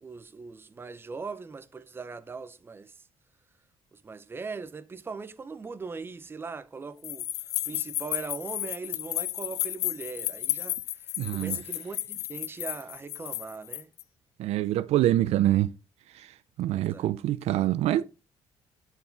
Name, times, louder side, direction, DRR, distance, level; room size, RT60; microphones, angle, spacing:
voice 1, 0.0-2.9 3.9-7.2 7.7-13.9 16.7-17.1, right 4 dB, 20° right, 0.6 m, -40 dB
sound 1, 7.0-14.0, left 15 dB, 90° left, 0.4 m, -33 dB
voice 2, 11.2-11.6 14.4-15.7 16.6-18.0, right 14 dB, 75° right, 0.4 m, -25 dB
10.5 x 4.5 x 3.3 m
cardioid pair, 120°, 11 cm